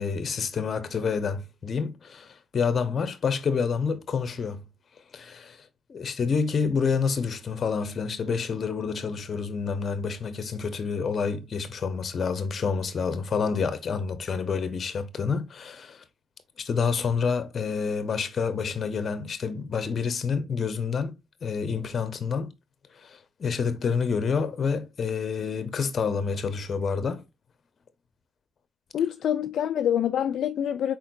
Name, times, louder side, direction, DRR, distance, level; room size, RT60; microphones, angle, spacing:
voice 1, 0.0-4.7 5.1-16.0 16.6-22.5 23.0-27.2, left 5 dB, 45° left, 1.0 m, -28 dB
voice 2, 28.9-31.0, left 10 dB, 65° left, 0.3 m, -26 dB
4.5 x 4.3 x 2.5 m
cardioid pair, 90°, 0 cm